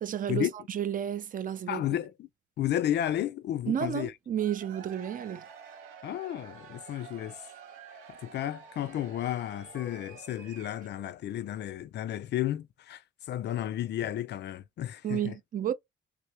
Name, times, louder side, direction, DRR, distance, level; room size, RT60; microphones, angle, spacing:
voice 1, 0.0-1.8 3.7-5.4 15.0-15.7, right 9 dB, 45° right, 0.5 m, -32 dB
voice 2, 1.7-2.3 2.6-4.1 6.0-7.4 8.2-13.0 13.3-15.3, left 12 dB, 60° left, 0.4 m, -32 dB
Cheering / Crowd, 4.3-11.1, right 6 dB, 90° right, 0.7 m, -49 dB
3.3 x 2.5 x 3.0 m
cardioid pair, 90°, 20 cm